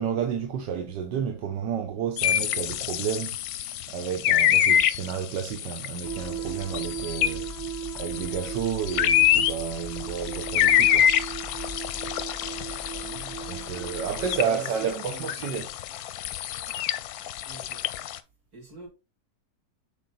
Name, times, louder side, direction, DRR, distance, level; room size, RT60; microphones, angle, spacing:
voice 1, 0.0-3.4 3.9-7.5 8.0-11.1 13.5-15.7, right 7 dB, 85° right, 1.5 m, -31 dB
sound 1, 2.2-18.2, left 10 dB, 70° left, 1.0 m, -26 dB
sound 2, 6.0-14.4, right 7 dB, 30° right, 0.3 m, -37 dB
voice 2, 13.0-13.5 14.4-15.6 17.4-17.9 18.5-18.9, right 5 dB, 60° right, 3.3 m, -45 dB
6.9 x 4.2 x 4.0 m
omnidirectional pair, 1.8 m